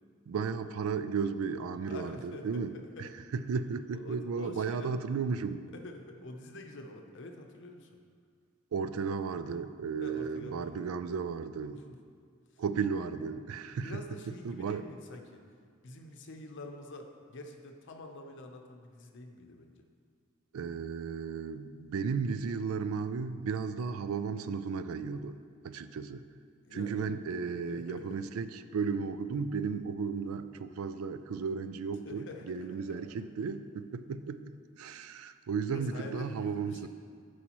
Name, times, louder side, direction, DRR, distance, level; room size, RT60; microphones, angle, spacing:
voice 1, 0.3-2.7 3.0-5.7 8.7-11.8 12.6-14.0 14.4-14.8 20.5-25.4 25.6-26.2 26.7-34.4 34.8-36.9, right 5 dB, 80° right, 11 dB, 0.4 m, -34 dB
voice 2, 1.9-3.1 3.9-5.1 5.4-8.0 10.0-10.9 11.7-12.0 12.5-12.6 13.8-15.4 15.8-19.9 26.6-27.1 27.5-28.3 32.0-33.0 34.9-35.0 35.7-36.9, left 1 dB, 60° left, 4 dB, 0.7 m, -47 dB
12.5 x 4.8 x 3.0 m, 2.1 s
head